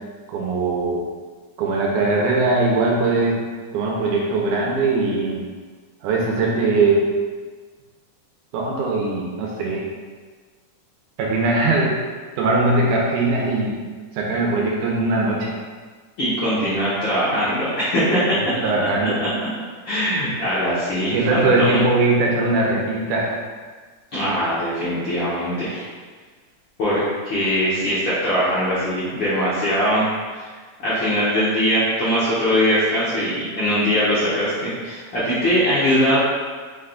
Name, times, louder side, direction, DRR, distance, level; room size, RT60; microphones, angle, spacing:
voice 1, 0.3-1.0 1.6-3.4 3.7-5.4 6.0-7.0 8.5-9.8 11.2-12.0 12.4-13.8 14.1-15.5 18.4-19.2 21.1-23.3 24.2-24.3, right 2 dB, 80° right, -2 dB, 2.1 m, -20 dB
voice 2, 16.2-18.4 19.2-19.3 19.8-21.8 24.1-25.9 26.8-30.0 30.3-30.5 30.8-36.2, equal, 85° left, -11 dB, 1.0 m, -21 dB
5.4 x 3.7 x 2.3 m, 1.5 s
omnidirectional pair, 3.7 m